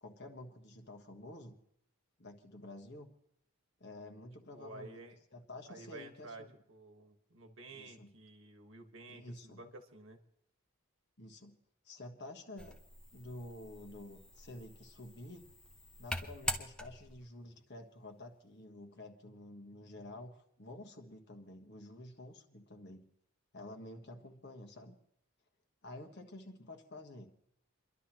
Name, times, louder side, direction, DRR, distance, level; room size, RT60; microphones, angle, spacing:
voice 1, 0.0-1.6 2.2-3.1 3.8-5.0 5.3-6.5 7.7-8.1 9.1-9.6 11.2-11.5 11.8-12.8 13.1-15.5 16.0-23.0 23.5-25.0 25.8-27.3, left 1 dB, 50° left, 4 dB, 1.4 m, -50 dB
voice 2, 4.5-5.1 5.7-10.2, right 2 dB, 60° right, 5 dB, 1.5 m, -52 dB
sound 1, 12.6-17.3, left 1 dB, 5° left, 0.8 m, -44 dB
29.0 x 11.5 x 3.0 m, 0.75 s
head